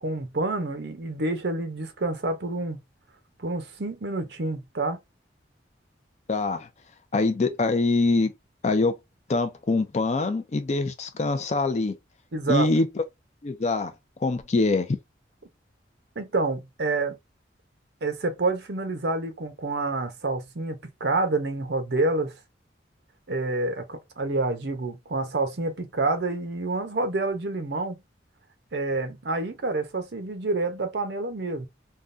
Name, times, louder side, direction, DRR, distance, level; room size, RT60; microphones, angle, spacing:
voice 1, 0.0-2.8 3.4-5.0 12.3-12.7 16.2-17.2 18.0-22.3 23.3-28.0 28.7-31.7, right 2 dB, 65° right, 0.8 m, -28 dB
voice 2, 6.3-6.7 7.1-8.3 8.6-8.9 9.3-12.0 12.5-12.9 13.4-13.9 14.2-15.0, left 3 dB, 40° left, 0.4 m, -24 dB
3.6 x 2.2 x 2.5 m
head